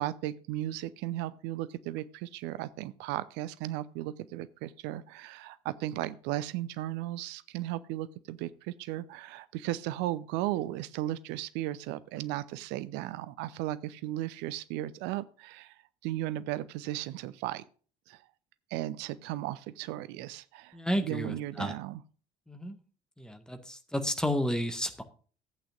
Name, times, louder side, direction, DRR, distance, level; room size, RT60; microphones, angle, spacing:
voice 1, 0.0-17.6 18.1-18.2 18.7-22.0, right 14 dB, 60° right, 17 dB, 0.6 m, -36 dB
voice 2, 20.7-21.7 22.5-22.8 23.2-25.0, equal, 5° left, 6 dB, 1.7 m, -32 dB
14.0 x 8.6 x 2.5 m, 0.40 s
figure-of-eight pair, 55°, 21 cm